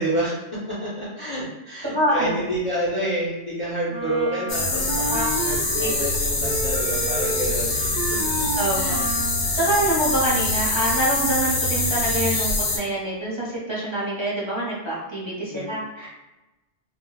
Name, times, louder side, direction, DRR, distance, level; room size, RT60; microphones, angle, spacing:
voice 1, 0.0-8.2 8.6-9.1 9.6-9.8 15.5-15.7, right 1 dB, 30° left, -8 dB, 0.6 m, -29 dB
voice 2, 1.8-2.4 5.1-5.2 5.8-5.9 8.6-8.8 9.5-16.2, right 1 dB, 30° right, -7 dB, 0.6 m, -25 dB
Wind instrument woodwind instrument, 3.9-6.1 6.4-9.5, right 2 dB, 70° right, 0.4 m, -31 dB
sound 1, 4.5-12.8, left 2 dB, 70° left, 1.0 m, -24 dB
2.2 x 2.1 x 3.8 m, 1.0 s
omnidirectional pair, 1.3 m